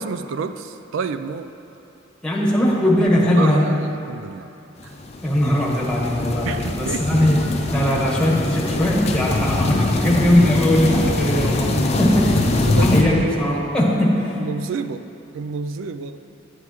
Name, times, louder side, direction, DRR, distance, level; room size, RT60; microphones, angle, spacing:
voice 1, 0.0-1.5 3.4-4.5 4.8-4.9 6.5-7.4 11.8-12.0 12.6-13.2 14.4-15.0 15.3-16.2, right 5 dB, 80° right, 10 dB, 0.4 m, -29 dB
voice 2, 2.2-3.7 5.2-7.4 7.7-12.4 12.8-14.3, left 1 dB, 5° left, -4 dB, 1.2 m, -19 dB
sound 1, 4.8-13.0, left 2 dB, 35° left, 0.5 m, -22 dB
10.5 x 8.1 x 3.0 m, 2.9 s
head